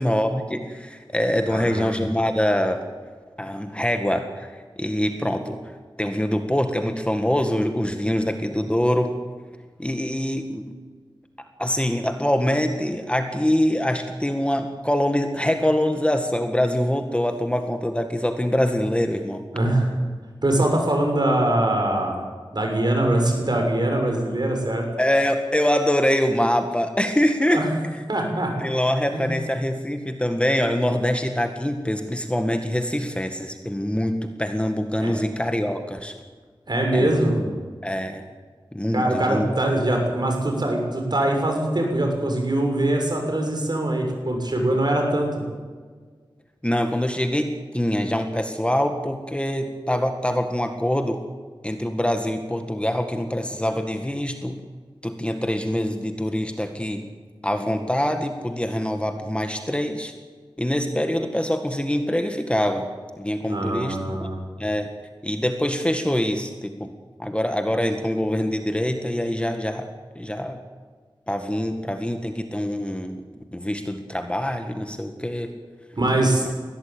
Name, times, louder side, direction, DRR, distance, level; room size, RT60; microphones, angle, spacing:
voice 1, 0.0-2.8 3.4-4.5 4.8-5.6 6.0-9.1 9.8-10.7 11.6-19.4 25.0-27.6 28.6-36.1 36.9-37.5 37.8-38.2 38.7-39.5 46.6-51.2 51.6-54.6 55.0-57.0 57.4-60.1 60.6-62.9 63.2-64.3 64.6-64.9 65.2-66.9 67.2-69.9 70.2-70.6 71.3-73.2 73.5-75.5, equal, 10° left, 6 dB, 1.8 m, -24 dB
voice 2, 1.5-2.0 19.5-19.9 20.4-22.2 22.5-24.9 27.5-27.7 28.1-28.5 29.1-29.4 35.0-35.1 36.7-37.4 38.9-45.4 63.5-64.4 75.9-76.5, right 1 dB, 55° right, 2 dB, 6.8 m, -22 dB
21.0 x 17.0 x 9.0 m, 1.5 s
wide cardioid pair, 70°, 9 cm